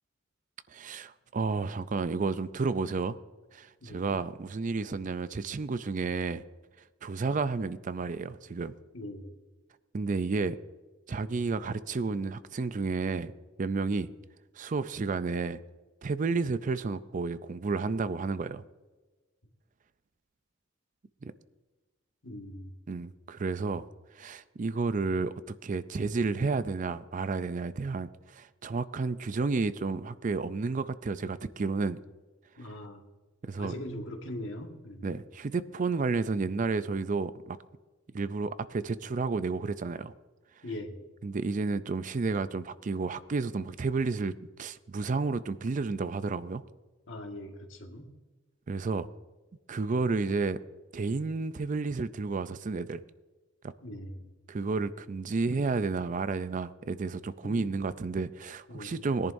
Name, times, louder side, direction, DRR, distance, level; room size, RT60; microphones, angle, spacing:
voice 1, 0.7-3.2 3.5-6.4 7.0-8.7 9.9-10.6 11.1-13.3 13.6-14.1 14.6-15.6 16.0-18.6 21.2-21.3 22.9-23.9 24.2-32.0 33.5-33.7 35.0-37.6 38.1-40.1 41.2-44.3 44.6-46.6 48.7-49.1 49.7-50.6 50.9-53.0 53.6-53.7 54.5-59.3, right 4 dB, 40° right, 14 dB, 0.4 m, -31 dB
voice 2, 3.8-4.2 8.9-9.3 22.2-22.7 32.6-33.0 33.6-35.1 40.6-41.1 47.1-48.1 53.8-54.3 57.4-57.8 58.7-59.1, left 1 dB, 75° left, 2 dB, 1.7 m, -41 dB
20.5 x 10.5 x 2.6 m, 1.2 s
head